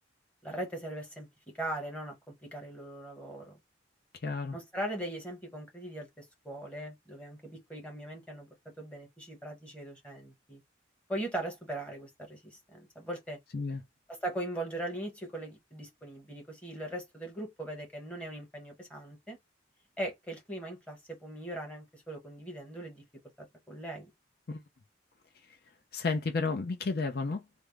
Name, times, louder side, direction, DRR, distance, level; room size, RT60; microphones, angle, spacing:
voice 1, 0.4-3.6 4.5-10.6 11.1-13.4 14.1-19.4 20.0-23.0 23.4-24.1, right 1 dB, 5° left, 1.1 m, -40 dB
voice 2, 4.2-4.6 13.5-13.8 24.5-24.6 25.9-27.4, left 4 dB, 55° left, 0.5 m, -32 dB
3.4 x 2.0 x 3.4 m
head